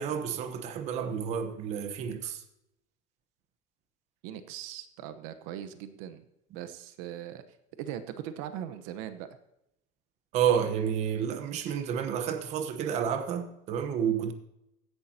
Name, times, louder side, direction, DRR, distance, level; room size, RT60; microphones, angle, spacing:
voice 1, 0.0-2.4 10.3-14.3, right 8 dB, 40° right, 1.1 m, -30 dB
voice 2, 4.2-6.2 6.5-7.4 7.8-9.3, right 10 dB, 75° right, 1.0 m, -40 dB
16.0 x 11.0 x 2.9 m
cardioid pair, 175°, 17 cm